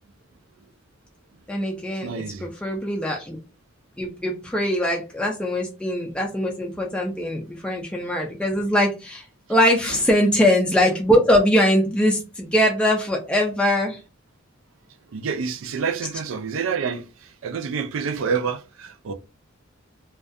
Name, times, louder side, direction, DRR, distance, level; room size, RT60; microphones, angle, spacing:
voice 1, 1.5-3.4 4.0-14.0, equal, 5° left, 0.4 m, -22 dB
voice 2, 2.0-2.5 9.9-10.0 15.1-19.1, right 6 dB, 75° right, 0.4 m, -28 dB
2.3 x 2.2 x 2.6 m
head